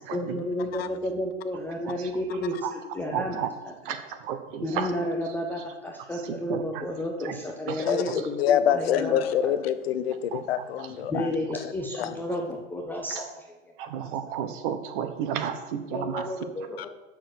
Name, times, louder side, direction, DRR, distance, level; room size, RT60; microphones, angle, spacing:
voice 1, 0.1-4.0 4.6-9.2 9.4-9.5 11.1-13.4 15.9-16.9, left 1 dB, 5° left, 0 dB, 0.5 m, -32 dB
voice 2, 3.1-3.5 3.9-4.0 4.3-4.8 6.5-6.6 10.3-10.4 13.9-16.2, right 9 dB, 40° right, 8 dB, 1.1 m, -31 dB
voice 3, 7.9-11.3 12.0-12.1 16.8-16.9, left 9 dB, 50° left, 12 dB, 0.6 m, -26 dB
7.1 x 6.3 x 6.3 m, 1.1 s
figure-of-eight pair, 105°, 39 cm